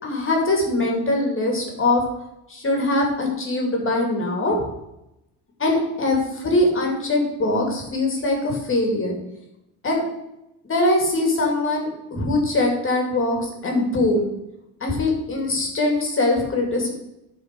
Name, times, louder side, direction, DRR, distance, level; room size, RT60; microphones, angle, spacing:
voice 1, 0.0-2.0 2.5-4.6 5.6-9.2 9.8-10.0 10.6-14.3 14.8-16.9, left 2 dB, 30° left, 1 dB, 2.7 m, -22 dB
11.5 x 4.9 x 5.3 m, 0.89 s
cardioid pair, 130°, 39 cm